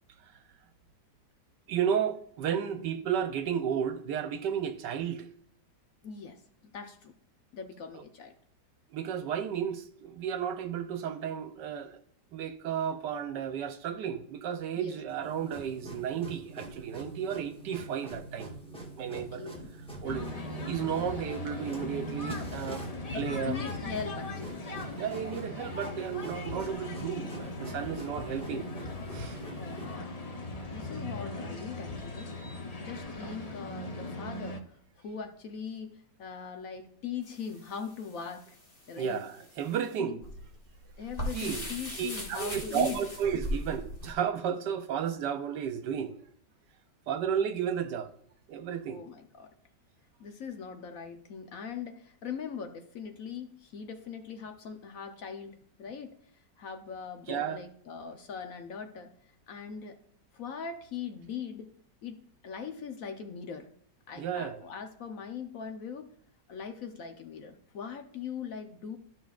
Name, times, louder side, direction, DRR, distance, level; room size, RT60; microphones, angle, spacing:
voice 1, 1.7-5.3 8.9-12.0 12.3-18.5 19.0-19.5 20.0-20.3 20.6-22.8 23.1-23.6 25.0-28.7 29.1-29.4 39.0-40.2 41.3-46.1 47.1-48.1 48.5-49.0 57.3-57.6 64.2-64.6, right 8 dB, 80° right, 1.3 m, -33 dB
voice 2, 6.0-7.1 7.5-8.3 14.8-15.0 19.1-19.8 23.5-24.6 29.6-30.1 30.7-32.3 32.8-38.6 38.9-39.2 40.0-40.2 41.0-43.0 48.9-49.5 50.2-56.1 56.6-59.1 59.5-60.0 60.3-61.7 62.0-63.7 64.1-66.1 66.5-69.0, left 6 dB, 60° left, 1.1 m, -41 dB
sound 1, 15.1-30.0, right 2 dB, 5° left, 0.9 m, -45 dB
sound 2, 20.0-34.6, left 2 dB, 40° left, 0.5 m, -39 dB
sound 3, 37.2-44.1, equal, 25° left, 1.6 m, -39 dB
12.5 x 5.9 x 2.4 m
omnidirectional pair, 1.9 m